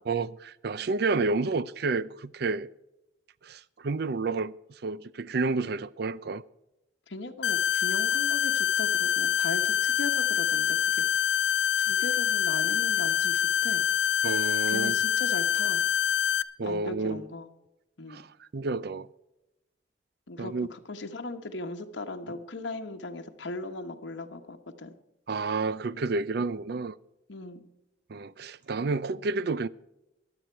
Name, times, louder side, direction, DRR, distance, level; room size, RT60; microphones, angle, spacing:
voice 1, 0.1-2.7 3.4-4.5 4.8-6.4 14.2-14.9 16.6-17.2 18.1-18.3 18.5-19.1 20.4-20.7 25.3-27.0 28.1-29.7, right 3 dB, 60° right, 0.5 m, -30 dB
voice 2, 7.1-11.0 11.8-13.8 14.7-15.8 16.6-17.5 18.0-18.2 20.3-24.9 27.3-27.7 28.8-28.9, left 2 dB, 90° left, 1.2 m, -38 dB
sound 1, 7.4-16.4, left 9 dB, 70° left, 0.5 m, -26 dB
23.0 x 8.0 x 4.6 m
head